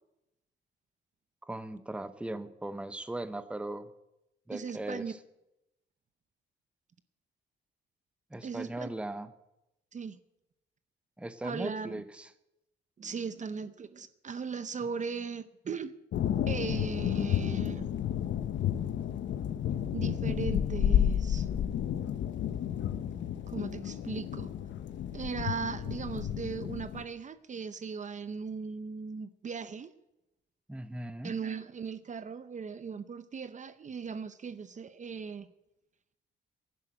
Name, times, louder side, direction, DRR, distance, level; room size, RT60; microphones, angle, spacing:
voice 1, 1.4-3.9 4.5-5.2 8.3-9.3 11.2-12.3 30.7-31.3, right 1 dB, 5° right, 13 dB, 0.8 m, -38 dB
voice 2, 4.5-5.1 8.4-8.9 9.9-10.2 11.4-12.0 13.0-15.9 16.5-17.9 19.9-21.5 23.5-24.5 25.1-29.9 31.2-35.5, right 5 dB, 40° right, 14 dB, 0.8 m, -38 dB
sound 1, 16.1-27.0, left 10 dB, 65° left, 1.0 m, -31 dB
11.0 x 10.5 x 8.9 m, 0.90 s
cardioid pair, 90°, 20 cm